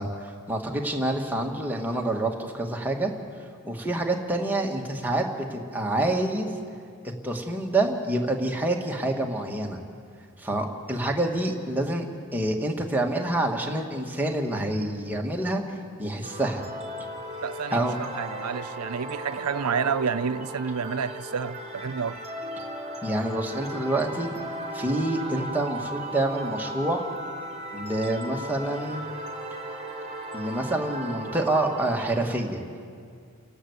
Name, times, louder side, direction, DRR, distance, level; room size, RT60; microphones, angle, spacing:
voice 1, 0.0-3.1 3.6-6.5 7.2-9.8 10.4-12.1 12.3-15.6 16.0-16.6 17.7-18.0 23.0-24.3 24.7-27.0 27.7-29.1 30.3-32.6, right 1 dB, 10° right, 1.9 m, -27 dB
sound 1, 16.2-32.1, right 1 dB, 30° right, 3.4 m, -37 dB
voice 2, 17.4-22.2, right 6 dB, 90° right, 0.6 m, -29 dB
29.5 x 12.0 x 8.2 m
head